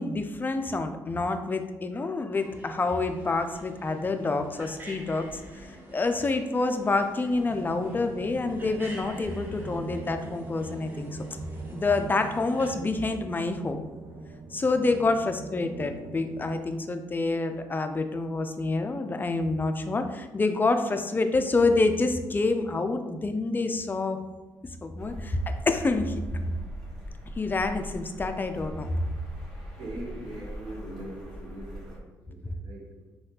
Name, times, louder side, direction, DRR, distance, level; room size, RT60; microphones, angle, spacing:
voice 1, 0.0-11.1 11.7-13.8 14.5-24.2 24.8-26.1 26.4-26.6 27.4-28.9, left 3 dB, 25° left, 7 dB, 0.3 m, -27 dB
sound 1, 2.3-12.7, right 1 dB, 25° right, 0.8 m, -48 dB
sound 2, 7.5-16.6, right 3 dB, 40° right, 0.4 m, -42 dB
voice 2, 14.8-15.2 29.8-32.9, right 1 dB, 80° right, -5 dB, 0.7 m, -41 dB
sound 3, 25.0-32.0, equal, 5° left, 1.3 m, -42 dB
3.3 x 2.3 x 2.8 m, 1.1 s
cardioid pair, 70°, 8 cm